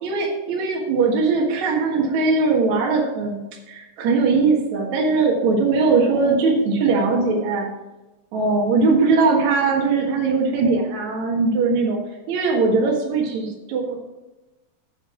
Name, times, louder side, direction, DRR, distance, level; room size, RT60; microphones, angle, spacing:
voice 1, 0.0-3.4 3.7-7.7 8.3-12.0 12.3-14.0, right 4 dB, 60° right, -1 dB, 2.8 m, -20 dB
9.0 x 7.9 x 6.0 m, 1.0 s
omnidirectional pair, 3.8 m